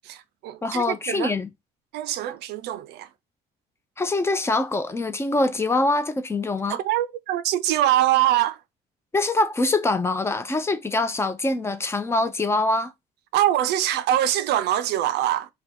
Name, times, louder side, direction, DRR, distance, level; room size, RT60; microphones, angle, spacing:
voice 1, 0.1-1.3 1.9-3.1 6.7-8.6 13.3-15.5, right 12 dB, 80° right, 0.4 m, -23 dB
voice 2, 0.6-1.5 4.0-6.8 9.1-12.9, left 2 dB, 15° left, 0.5 m, -24 dB
2.5 x 2.3 x 4.0 m
cardioid pair, 110°, 17 cm